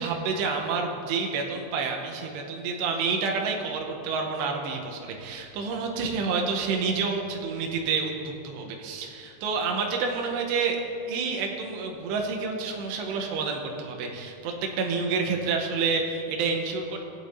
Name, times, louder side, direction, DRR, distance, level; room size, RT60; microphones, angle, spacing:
voice 1, 0.0-10.8 11.1-17.1, right 4 dB, 80° right, 2 dB, 3.0 m, -29 dB
18.0 x 8.5 x 2.7 m, 2.6 s
omnidirectional pair, 5.0 m